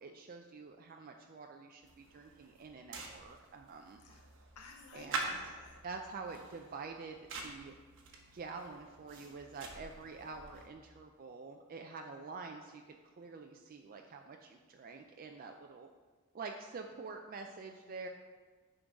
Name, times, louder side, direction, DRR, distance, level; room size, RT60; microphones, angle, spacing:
voice 1, 0.0-4.0 4.9-5.4 5.8-7.2 7.4-7.7 8.3-15.9 16.3-18.1, right 4 dB, 40° right, 3 dB, 0.4 m, -47 dB
sound 1, 1.8-10.7, right 3 dB, 60° right, 1.1 m, -46 dB
voice 2, 4.6-5.8, left 3 dB, 90° left, 2 dB, 0.7 m, -54 dB
10.0 x 3.9 x 4.6 m, 1.4 s
head